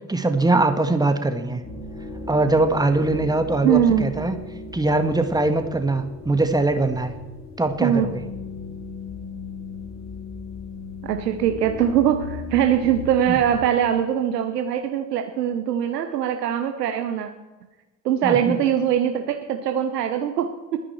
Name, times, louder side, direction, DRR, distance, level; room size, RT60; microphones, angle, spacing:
voice 1, 0.1-1.6 2.3-4.4 4.7-7.1 7.6-8.2 13.3-13.4 18.2-18.6, right 2 dB, 10° right, 7 dB, 1.9 m, -22 dB
sound 1, 1.6-13.6, left 3 dB, 30° left, 5.9 m, -37 dB
voice 2, 3.6-4.1 7.8-8.1 11.0-17.3 18.0-20.8, right 9 dB, 70° right, 6 dB, 1.1 m, -22 dB
29.0 x 10.0 x 4.5 m, 1.1 s
figure-of-eight pair, 55°, 49 cm